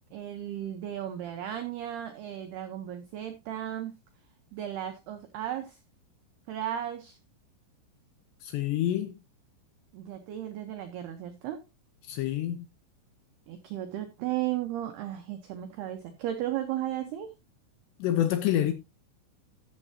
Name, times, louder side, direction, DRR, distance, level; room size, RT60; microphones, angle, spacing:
voice 1, 0.1-3.9 4.5-5.8 6.5-7.2 9.9-11.6 13.5-17.3, right 12 dB, 85° right, 2.3 m, -35 dB
voice 2, 8.4-9.2 12.1-12.7 18.0-18.7, left 12 dB, 85° left, 2.5 m, -27 dB
13.5 x 7.4 x 2.8 m
omnidirectional pair, 5.9 m